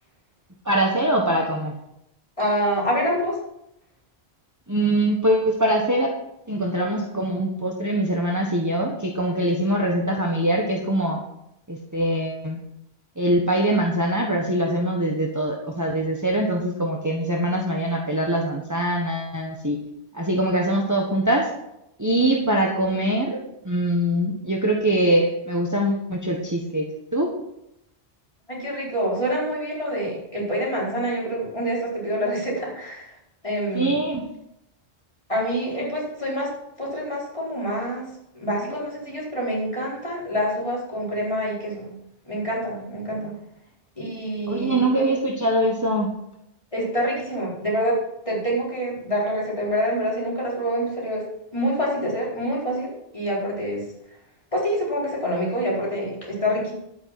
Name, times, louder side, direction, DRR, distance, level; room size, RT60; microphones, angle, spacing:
voice 1, 0.6-1.7 4.7-6.1 6.5-11.2 11.7-12.6 13.2-19.8 20.1-21.5 22.0-23.4 23.6-26.9 27.1-27.3 33.7-34.3 44.5-46.1, right 1 dB, 15° right, 0 dB, 1.3 m, -23 dB
voice 2, 2.4-3.4 28.5-33.1 33.4-34.0 35.3-36.5 36.8-38.1 38.3-41.9 42.3-43.4 44.0-44.9 46.7-48.0 48.2-51.2 51.5-53.8 54.5-56.7, equal, 30° left, -5 dB, 4.6 m, -26 dB
11.5 x 9.0 x 5.9 m, 0.82 s
omnidirectional pair, 1.2 m